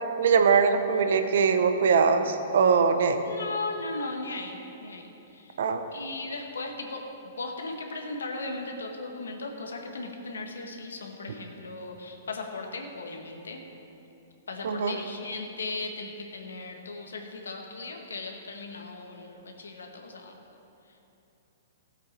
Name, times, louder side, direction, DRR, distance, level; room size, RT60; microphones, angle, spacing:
voice 1, 0.2-3.2 5.6-5.8 14.6-14.9, right 5 dB, 70° right, 8 dB, 0.9 m, -22 dB
voice 2, 3.2-5.6 5.9-7.0 7.4-13.6 14.5-20.3, left 3 dB, 85° left, 2 dB, 1.5 m, -37 dB
16.0 x 8.0 x 4.5 m, 2.9 s
hypercardioid pair, 120°, 0 cm